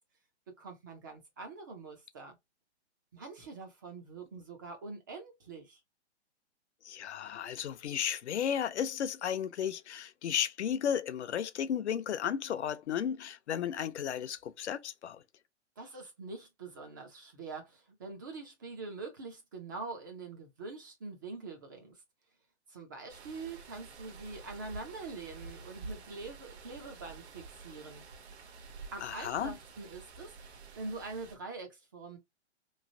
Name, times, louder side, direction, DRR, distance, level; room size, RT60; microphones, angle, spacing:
voice 1, 0.6-2.4 3.1-5.8 15.8-22.0 22.7-28.0 28.9-30.3 30.8-32.2, right 3 dB, 20° right, 0.3 m, -44 dB
voice 2, 6.8-15.2 29.0-29.5, left 9 dB, 70° left, 0.6 m, -34 dB
sound 1, 23.1-31.4, right 4 dB, 65° right, 1.0 m, -49 dB
3.1 x 2.4 x 2.6 m
hypercardioid pair, 135°, 35 cm